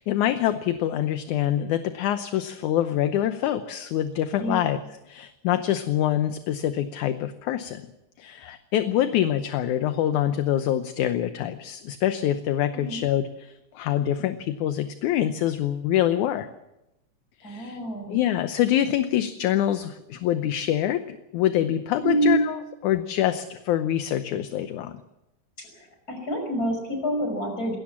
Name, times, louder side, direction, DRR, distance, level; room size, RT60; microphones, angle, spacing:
voice 1, 0.0-4.8 5.1-7.8 8.2-16.5 17.4-17.8 18.1-25.0, left 11 dB, 75° left, 10 dB, 2.1 m, -25 dB
voice 2, 4.4-4.7 12.7-13.0 17.4-18.2 22.0-22.4 25.6-27.8, right 1 dB, 25° left, 4 dB, 6.1 m, -27 dB
20.5 x 18.0 x 7.4 m, 0.92 s
omnidirectional pair, 3.8 m